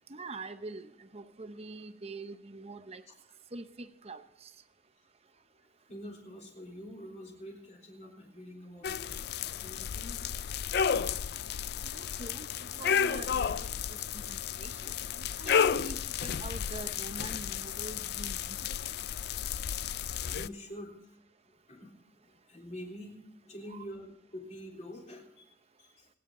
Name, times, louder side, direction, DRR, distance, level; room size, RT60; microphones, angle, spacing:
voice 1, 0.1-3.0 3.5-4.5 11.8-12.5 12.7-14.9 15.4-18.6 23.7-23.8, right 2 dB, 35° right, 10 dB, 0.8 m, -44 dB
voice 2, 5.9-10.2 11.6-12.1 15.4-15.6 20.0-21.2 21.5-21.9 22.2-23.2 23.4-26.1, equal, 40° left, 0 dB, 3.6 m, -47 dB
sound 1, 8.8-20.5, left 7 dB, 60° left, 0.4 m, -32 dB
27.0 x 9.4 x 3.8 m, 0.83 s
head